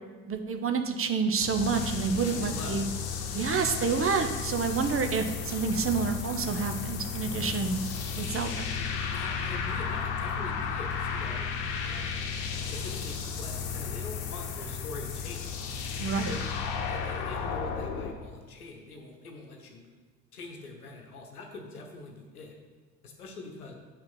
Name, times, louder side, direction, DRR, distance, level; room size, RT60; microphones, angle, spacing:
voice 1, 0.3-2.9 3.3-7.8 8.2-8.7 16.0-16.3, right 5 dB, 30° right, 6 dB, 0.8 m, -28 dB
sound 1, 1.4-18.1, left 6 dB, 65° left, 1.0 m, -34 dB
sound 2, 1.7-6.4, left 4 dB, 35° left, 1.2 m, -49 dB
voice 2, 2.2-2.8 3.3-3.7 9.0-11.5 11.7-12.2 12.7-15.6 16.3-16.5 16.9-19.9 20.3-22.6 23.0-23.7, left 3 dB, 85° left, 2 dB, 1.0 m, -44 dB
7.0 x 5.6 x 5.5 m, 1.4 s
figure-of-eight pair, 50°, 43 cm